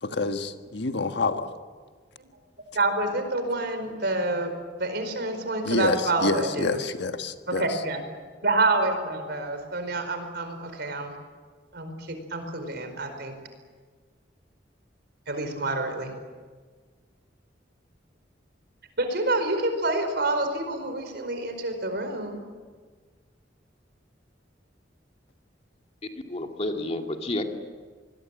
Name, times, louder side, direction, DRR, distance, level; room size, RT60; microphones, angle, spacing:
voice 1, 0.0-1.5 5.6-7.8, left 3 dB, 65° left, 7 dB, 1.5 m, -27 dB
voice 2, 2.7-4.5 4.8-6.8 7.5-8.0 8.4-11.1 11.7-13.3 15.3-16.1 19.0-22.4, right 2 dB, 60° right, 7 dB, 4.7 m, -27 dB
voice 3, 26.1-27.4, left 1 dB, 35° left, 4 dB, 2.3 m, -30 dB
26.0 x 21.0 x 8.9 m, 1.5 s
head